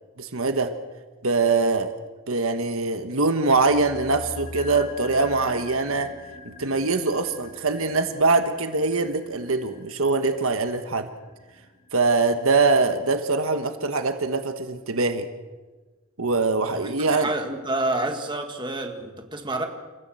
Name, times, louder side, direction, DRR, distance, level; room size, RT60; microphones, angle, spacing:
voice 1, 0.2-0.7 1.2-1.9 2.3-6.1 6.6-11.1 11.9-15.3 16.2-17.3, right 3 dB, 75° right, 8 dB, 1.4 m, -23 dB
sound 1, 3.5-13.8 14.0-14.1, left 2 dB, 35° left, 2.2 m, -44 dB
voice 2, 16.8-19.7, right 2 dB, 20° right, 4 dB, 2.0 m, -29 dB
29.0 x 15.0 x 7.8 m, 1.3 s
head